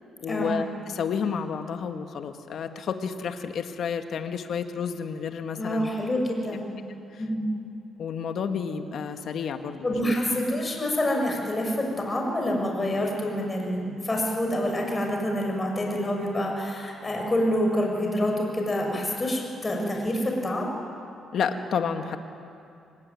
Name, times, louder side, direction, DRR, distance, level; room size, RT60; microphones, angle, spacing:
voice 1, 0.2-5.9 6.5-6.6 8.0-10.1 21.3-22.2, left 6 dB, 65° left, 6 dB, 1.8 m, -30 dB
voice 2, 5.5-6.7 7.2-7.5 9.8-20.8, left 1 dB, 25° left, 1 dB, 6.9 m, -27 dB
25.0 x 19.5 x 9.8 m, 2.6 s
cardioid pair, 90°, 0 cm